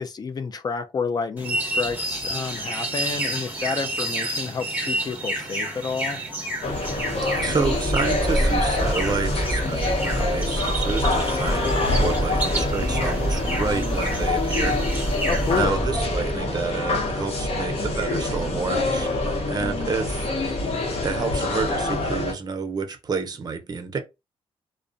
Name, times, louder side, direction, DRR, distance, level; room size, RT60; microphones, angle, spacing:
voice 1, 0.0-6.2 15.3-15.8, left 5 dB, 40° left, 0.4 m, -29 dB
sound 1, 1.4-15.6, right 1 dB, 15° right, 1.1 m, -30 dB
sound 2, 6.6-22.3, left 2 dB, 65° left, 0.8 m, -26 dB
voice 2, 7.4-14.8 15.1-19.1 19.4-20.3 21.0-24.0, right 5 dB, 40° right, 0.5 m, -29 dB
sound 3, 7.6-16.4, right 1 dB, 5° left, 0.8 m, -28 dB
2.4 x 2.1 x 2.4 m
cardioid pair, 80°, 11 cm